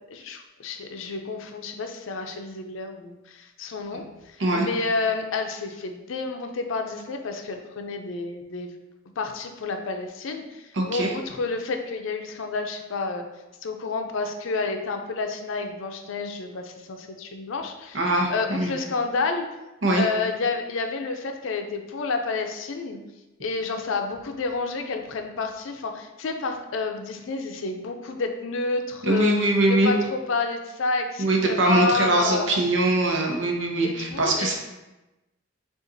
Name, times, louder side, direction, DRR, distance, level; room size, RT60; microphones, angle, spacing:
voice 1, 0.1-8.7 9.2-13.3 13.6-19.5 19.9-23.0 23.4-29.4 29.7-32.6 33.8-34.5, left 3 dB, 80° left, 5 dB, 0.5 m, -29 dB
voice 2, 10.8-11.1 17.9-18.7 19.8-20.0 29.0-29.9 31.2-34.5, right 2 dB, 70° right, 1 dB, 0.7 m, -22 dB
6.6 x 2.4 x 2.6 m, 1.0 s
head